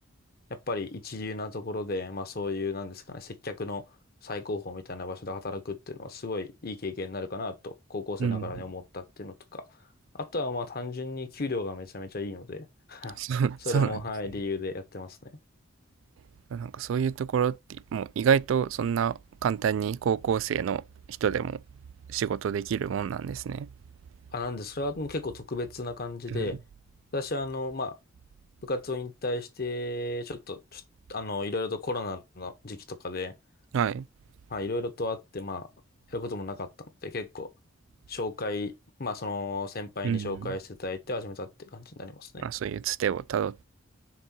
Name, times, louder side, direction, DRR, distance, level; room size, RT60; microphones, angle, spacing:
voice 1, 0.5-3.8 4.2-9.7 10.1-15.2 24.3-26.6 27.1-27.9 28.6-30.8 31.1-33.3 34.5-35.7 36.1-36.7 37.0-37.5 38.1-38.7 39.0-42.5, left 2 dB, 50° left, 0.9 m, -34 dB
voice 2, 13.2-14.0 16.5-20.8 21.2-21.6 22.1-23.7 26.3-26.5 33.7-34.1 40.0-40.6 42.4-43.6, right 7 dB, 75° right, 0.3 m, -28 dB
6.0 x 3.7 x 4.4 m
head